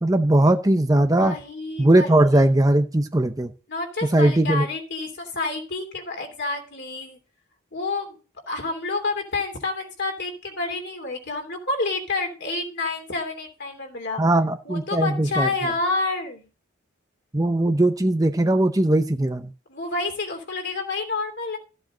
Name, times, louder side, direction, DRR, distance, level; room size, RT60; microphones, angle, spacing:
voice 1, 0.0-1.3 1.8-3.5 4.0-4.7 14.2-15.5 17.3-19.5, right 1 dB, 15° right, 7 dB, 0.6 m, -19 dB
voice 2, 1.2-2.1 3.7-7.2 7.7-8.2 8.5-14.2 14.6-16.5 19.7-21.6, left 3 dB, 55° left, 3 dB, 3.0 m, -29 dB
14.5 x 7.7 x 3.8 m, 0.34 s
head